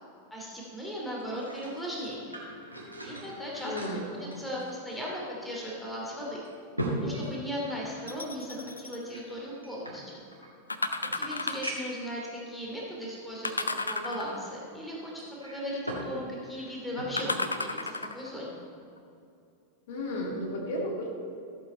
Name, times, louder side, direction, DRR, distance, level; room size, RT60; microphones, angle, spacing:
voice 1, 0.3-2.4 3.0-3.7 4.2-6.4 7.0-10.2 11.1-18.6, equal, 5° left, -4 dB, 2.6 m, -37 dB
sound 1, 1.2-5.2 5.5-5.6 6.2-8.2 9.1-10.5 11.1-11.2 11.6-12.1 12.8-12.9 15.2-16.1 16.5-17.3 17.8-18.0, right 1 dB, 85° right, 1.9 m, -39 dB
voice 2, 3.6-4.1 19.9-21.1, left 1 dB, 55° left, 0 dB, 2.1 m, -33 dB
sound 2, 8.1-9.0 10.7-11.8 13.4-14.6 17.2-18.3 19.0-19.1, left 3 dB, 80° left, 0.5 m, -33 dB
14.0 x 7.9 x 4.4 m, 2.6 s
figure-of-eight pair, 90°, 0 cm